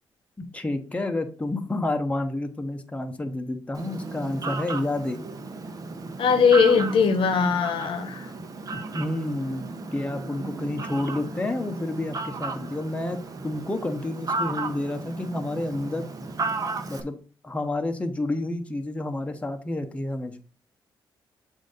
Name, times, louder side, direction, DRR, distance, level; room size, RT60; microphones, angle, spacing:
voice 1, 0.4-5.2 8.7-16.1 16.9-17.1 17.4-20.4, left 2 dB, 15° left, 5 dB, 0.9 m, -30 dB
Fowl, 3.7-17.0, right 3 dB, 45° right, 0.9 m, -34 dB
voice 2, 6.2-8.3, left 5 dB, 75° left, 9 dB, 0.9 m, -20 dB
7.1 x 2.7 x 5.6 m, 0.38 s
cardioid pair, 80°, 9 cm